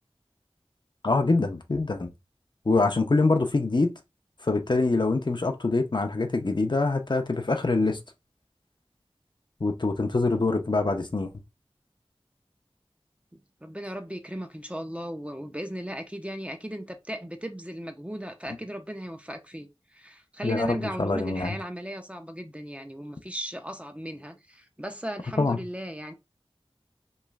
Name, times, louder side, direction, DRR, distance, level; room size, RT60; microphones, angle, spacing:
voice 1, 1.0-2.1 2.7-3.9 4.4-8.0 9.6-11.3 20.4-21.6 25.4-25.6, left 3 dB, 50° left, 0.5 m, -24 dB
voice 2, 13.6-26.1, equal, 10° right, 0.5 m, -36 dB
3.1 x 2.4 x 2.3 m
wide cardioid pair, 40°, 10 cm